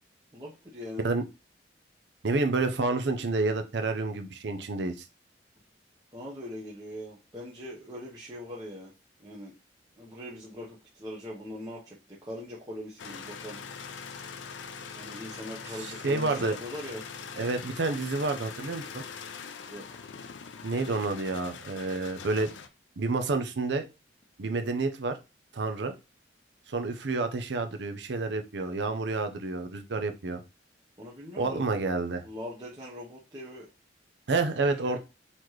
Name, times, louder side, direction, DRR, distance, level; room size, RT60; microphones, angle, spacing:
voice 1, 0.3-1.1 6.1-8.9 9.2-9.5 10.0-13.6 15.0-17.0 19.7-20.0 29.9-30.0 31.0-31.6 32.2-33.7 34.8-35.0, left 1 dB, 20° right, -7 dB, 0.9 m, -41 dB
voice 2, 2.2-5.0 15.8-16.6 17.4-19.0 20.6-22.5 23.0-23.9 24.4-25.2 25.5-25.9 26.7-30.4 31.4-32.2 34.3-35.0, right 3 dB, 65° right, 7 dB, 0.6 m, -29 dB
sound 1, 13.0-22.7, left 6 dB, 85° left, 0.5 m, -42 dB
4.1 x 3.0 x 3.1 m, 0.27 s
head